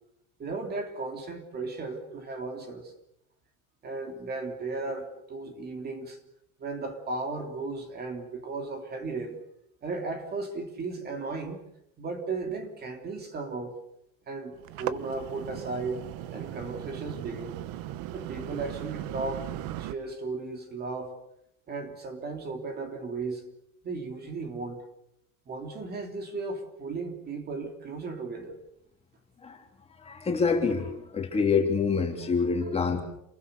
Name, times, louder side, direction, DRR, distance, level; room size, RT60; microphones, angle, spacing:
voice 1, 0.4-2.9 3.8-6.2 6.6-9.4 9.8-11.6 12.0-13.8 14.3-16.1 16.3-17.6 18.1-19.5 19.8-21.2 21.7-23.5 23.8-24.8 25.5-28.6, right 3 dB, 30° right, 5 dB, 3.2 m, -35 dB
sound 1, 14.5-19.9, right 13 dB, 85° right, 1.4 m, -38 dB
voice 2, 29.9-33.0, left 5 dB, 20° left, 2 dB, 3.3 m, -26 dB
28.5 x 22.0 x 6.9 m, 0.81 s
cardioid pair, 180°, 33 cm